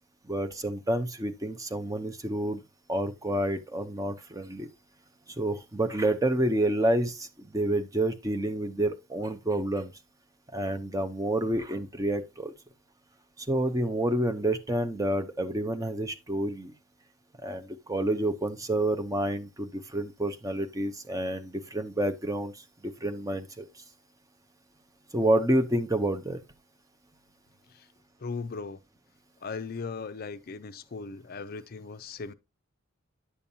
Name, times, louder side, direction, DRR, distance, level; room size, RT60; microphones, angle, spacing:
voice 1, 0.2-2.6 2.9-4.7 5.4-9.9 10.5-12.5 13.4-16.7 17.4-23.8 25.1-26.4, right 1 dB, 15° right, 0.7 m, -29 dB
voice 2, 28.2-28.8 29.4-32.3, left 4 dB, 45° left, 0.5 m, -38 dB
9.8 x 7.0 x 2.7 m
head